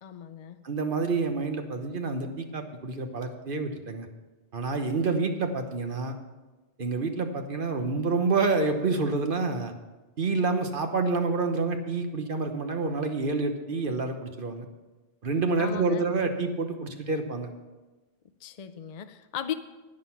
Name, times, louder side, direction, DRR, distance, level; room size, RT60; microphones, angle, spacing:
voice 1, 0.0-0.6 15.6-16.0 18.4-19.5, left 9 dB, 50° left, 10 dB, 0.6 m, -37 dB
voice 2, 0.6-4.1 4.5-6.2 6.8-9.7 10.2-14.7 15.2-17.5, right 3 dB, 60° right, 6 dB, 1.1 m, -28 dB
10.5 x 9.8 x 5.7 m, 1.2 s
omnidirectional pair, 1.1 m